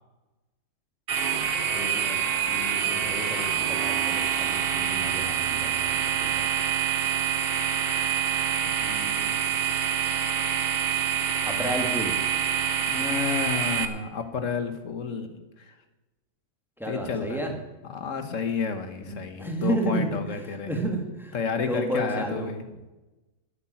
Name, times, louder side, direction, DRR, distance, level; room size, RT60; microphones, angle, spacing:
sound 1, 1.1-13.9, right 8 dB, 50° right, 1.1 m, -26 dB
voice 1, 1.7-2.2 2.5-6.5 8.8-9.3 11.4-12.1 16.8-17.5 19.0-22.5, right 1 dB, ahead, 2 dB, 2.0 m, -32 dB
voice 2, 12.9-15.7 16.9-17.4 17.9-20.7 21.3-22.6, left 5 dB, 85° left, 8 dB, 1.5 m, -31 dB
10.5 x 8.5 x 8.8 m, 1.1 s
omnidirectional pair, 1.3 m